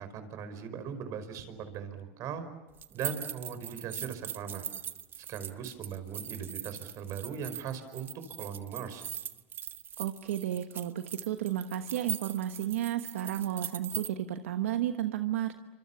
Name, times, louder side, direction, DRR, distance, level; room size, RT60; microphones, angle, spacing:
voice 1, 0.0-2.4 2.9-4.6 5.3-8.1 8.4-9.0, right 7 dB, 50° right, 11 dB, 5.1 m, -39 dB
sound 1, 2.8-14.1, right 8 dB, 30° right, 1.0 m, -41 dB
voice 2, 10.0-15.5, right 11 dB, 85° right, 7 dB, 1.3 m, -32 dB
29.5 x 26.0 x 7.2 m, 1.1 s
supercardioid pair, 110°, 7 cm